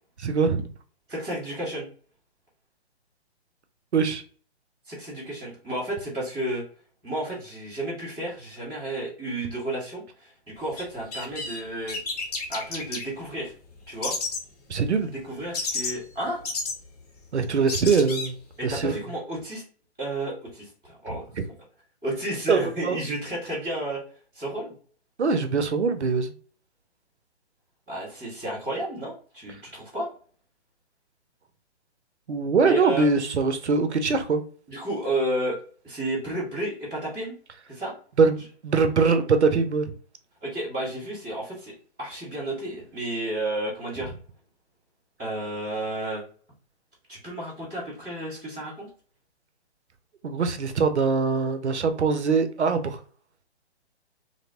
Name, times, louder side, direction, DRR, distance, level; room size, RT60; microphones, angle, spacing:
voice 1, 0.2-0.7 3.9-4.2 14.7-15.1 17.3-18.4 18.6-19.0 21.1-21.4 22.5-23.0 25.2-26.3 32.3-34.4 38.2-39.9 50.2-53.0, right 4 dB, 75° right, 0.6 m, -23 dB
voice 2, 1.1-1.9 4.9-6.6 7.0-10.3 10.6-12.0 12.5-13.5 13.9-14.2 15.0-16.4 18.6-19.6 20.0-21.2 22.0-24.0 24.3-24.7 27.9-30.1 32.6-33.0 34.7-35.6 35.8-37.4 37.7-37.9 40.4-44.1 45.2-46.2 47.1-48.9, right 1 dB, 5° right, 0.3 m, -32 dB
sound 1, 10.8-10.9 11.1-11.6 11.9-13.0 14.0-14.4 15.5-15.9 16.4-16.7 17.4-17.5 17.7-18.3, left 3 dB, 35° left, 0.7 m, -30 dB
2.8 x 2.0 x 2.7 m
figure-of-eight pair, 130°, 34 cm